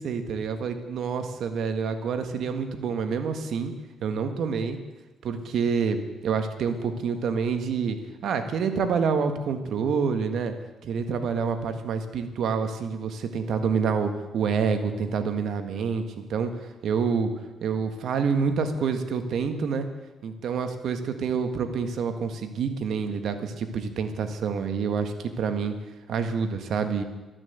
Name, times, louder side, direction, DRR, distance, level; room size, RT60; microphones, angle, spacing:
voice 1, 0.0-3.7 4.0-4.8 5.2-8.0 8.2-10.5 10.8-16.0 16.3-17.3 17.6-19.9 20.2-25.7 26.1-27.0, right 6 dB, 70° right, 8 dB, 1.6 m, -27 dB
12.5 x 11.0 x 8.0 m, 1.1 s
cardioid pair, 90°, 0 cm